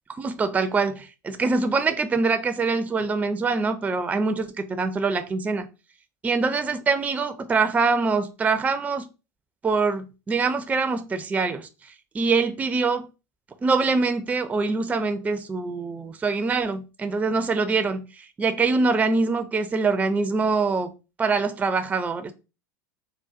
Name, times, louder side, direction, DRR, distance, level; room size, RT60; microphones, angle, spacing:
voice 1, 0.2-5.7 6.2-9.1 9.6-11.7 12.1-13.1 13.6-20.9 21.2-22.3, right 4 dB, 15° right, 0.4 m, -24 dB
3.8 x 2.1 x 2.4 m
hypercardioid pair, 85°, 10 cm